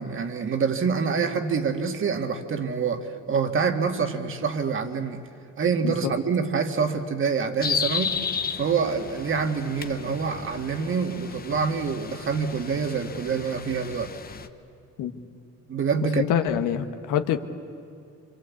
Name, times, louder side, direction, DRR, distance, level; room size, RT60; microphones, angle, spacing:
voice 1, 0.0-5.2 5.6-8.2 8.5-14.1 15.7-16.3, right 5 dB, 40° right, 6 dB, 1.9 m, -26 dB
sound 1, 7.6-14.5, left 6 dB, 30° left, 1.0 m, -33 dB
voice 2, 16.1-17.4, left 9 dB, 90° left, 8 dB, 1.5 m, -25 dB
26.0 x 26.0 x 8.4 m, 2.5 s
cardioid pair, 125°, 30 cm